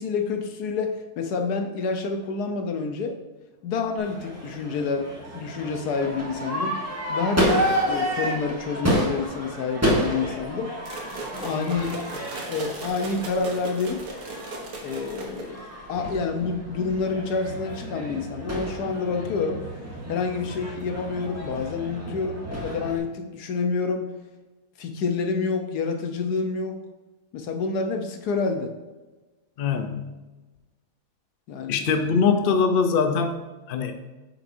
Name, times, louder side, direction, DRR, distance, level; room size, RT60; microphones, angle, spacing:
voice 1, 0.0-3.2 3.6-5.1 5.3-6.8 7.1-10.7 11.4-12.1 12.5-14.1 14.8-15.6 15.9-19.6 20.1-24.1 24.8-26.8 27.3-28.7 31.5-31.8, left 4 dB, 75° left, 5 dB, 1.3 m, -28 dB
Crowd / Fireworks, 4.0-23.0, equal, 10° right, 1.1 m, -30 dB
sound 1, 10.8-15.7, right 2 dB, 65° right, 1.6 m, -38 dB
voice 2, 29.6-30.1 31.7-33.4 33.7-34.0, left 5 dB, 60° left, 7 dB, 0.5 m, -22 dB
8.4 x 6.0 x 2.6 m, 1.2 s
omnidirectional pair, 1.7 m